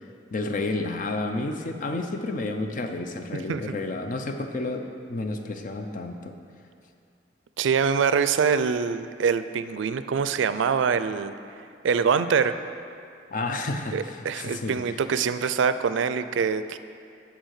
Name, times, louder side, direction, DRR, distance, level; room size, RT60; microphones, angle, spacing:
voice 1, 0.3-6.3 13.3-15.0, left 2 dB, 45° left, 5 dB, 0.6 m, -31 dB
voice 2, 7.6-11.3 11.8-12.6 13.9-16.8, right 6 dB, 85° right, 12 dB, 0.4 m, -24 dB
9.0 x 5.0 x 6.5 m, 2.4 s
head